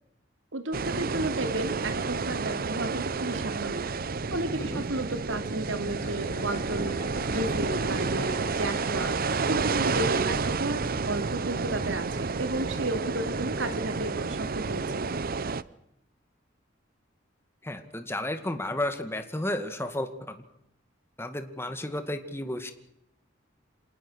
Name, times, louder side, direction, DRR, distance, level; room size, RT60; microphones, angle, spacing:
voice 1, 0.5-3.8 4.3-6.9 7.3-9.1 9.4-15.1, right 1 dB, 75° right, 8 dB, 2.8 m, -33 dB
sound 1, 0.7-15.6, right 4 dB, 50° right, 0.7 m, -30 dB
sound 2, 5.6-11.7, left 3 dB, 35° left, 4.2 m, -46 dB
voice 2, 17.6-20.4 21.2-22.7, left 1 dB, 15° left, 8 dB, 2.1 m, -33 dB
27.0 x 19.0 x 6.4 m, 0.83 s
head